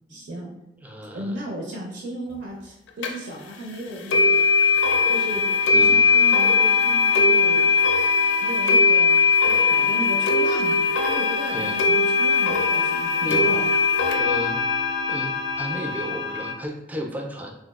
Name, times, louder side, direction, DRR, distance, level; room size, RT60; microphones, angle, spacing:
voice 1, 0.1-0.5 1.1-4.4 4.9-5.4 5.9-8.1 8.4-13.6, equal, 75° right, -2 dB, 0.5 m, -35 dB
voice 2, 0.8-1.4 5.7-6.0 11.5-11.8 13.3-13.6 14.2-14.6 15.1-17.5, equal, 10° right, 2 dB, 0.3 m, -33 dB
sound 1, 3.0-3.1 4.1-16.5, left 4 dB, 75° left, 0.4 m, -20 dB
3.8 x 2.3 x 2.3 m, 0.88 s
head